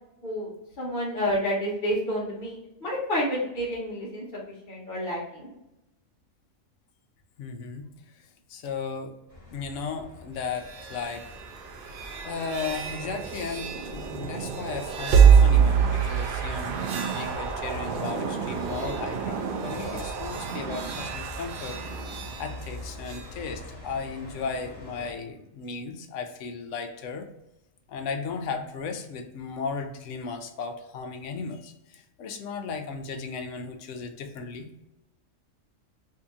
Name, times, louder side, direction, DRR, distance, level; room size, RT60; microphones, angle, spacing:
voice 1, 0.8-4.2 4.7-5.5 20.3-20.4, equal, 45° left, -8 dB, 1.0 m, -29 dB
voice 2, 7.4-9.2 9.5-11.2 12.2-21.8 22.4-27.3 27.9-34.7, left 5 dB, 70° left, 5 dB, 0.8 m, -35 dB
sound 1, 9.3-25.1, left 2 dB, 20° left, 0.9 m, -46 dB
sound 2, 10.4-23.3, right 7 dB, 75° right, 0.5 m, -25 dB
2.8 x 2.7 x 3.5 m, 0.91 s
omnidirectional pair, 1.4 m